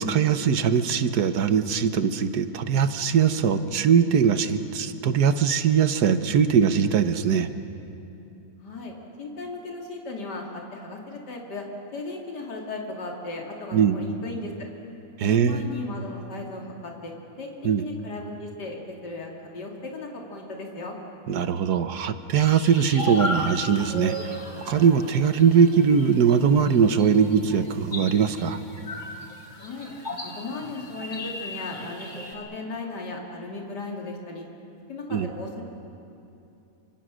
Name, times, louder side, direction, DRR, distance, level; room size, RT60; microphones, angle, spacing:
voice 1, 0.0-7.5 13.7-14.0 15.2-15.6 17.6-17.8 21.3-28.6 35.1-35.3, right 7 dB, 75° right, 10 dB, 1.5 m, -21 dB
voice 2, 8.6-11.6 11.9-14.7 15.2-17.5 17.8-21.0 29.6-29.9 30.2-34.4 34.9-35.6, left 2 dB, 75° left, 0 dB, 3.3 m, -36 dB
sound 1, 22.3-32.3, equal, 25° left, 2.5 m, -35 dB
27.0 x 25.5 x 6.4 m, 2.8 s
omnidirectional pair, 1.8 m